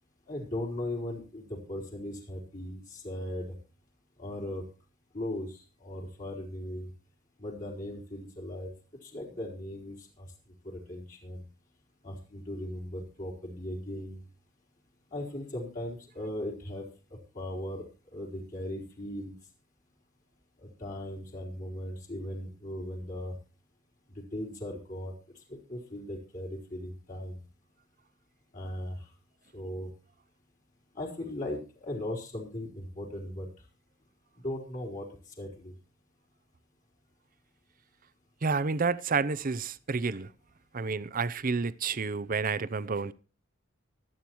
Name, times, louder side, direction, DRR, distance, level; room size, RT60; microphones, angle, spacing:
voice 1, 0.3-3.5 4.2-4.6 5.1-6.9 7.4-8.7 9.0-10.3 10.6-11.4 12.0-14.2 15.1-16.9 17.3-17.8 18.1-19.3 20.8-23.3 24.1-25.1 25.5-27.3 28.5-29.0 29.5-29.9 31.0-33.5 34.4-35.1 35.4-35.7, left 1 dB, 40° left, 4.0 m, -38 dB
voice 2, 38.4-40.3 40.7-43.1, right 4 dB, 45° right, 0.7 m, -30 dB
24.5 x 8.8 x 3.1 m
head